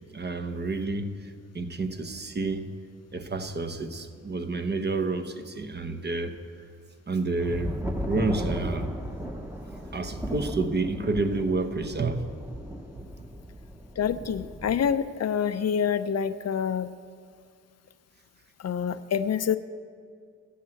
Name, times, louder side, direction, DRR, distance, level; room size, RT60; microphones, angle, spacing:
voice 1, 0.1-2.7 3.1-6.3 7.1-8.9 9.9-12.2, right 3 dB, 35° right, 8 dB, 0.9 m, -29 dB
sound 1, 7.4-15.0, equal, 5° right, 1.0 m, -36 dB
voice 2, 14.0-16.9 18.6-19.6, left 7 dB, 55° left, 12 dB, 0.5 m, -27 dB
13.5 x 7.9 x 7.7 m, 2.2 s
cardioid pair, 85°, 31 cm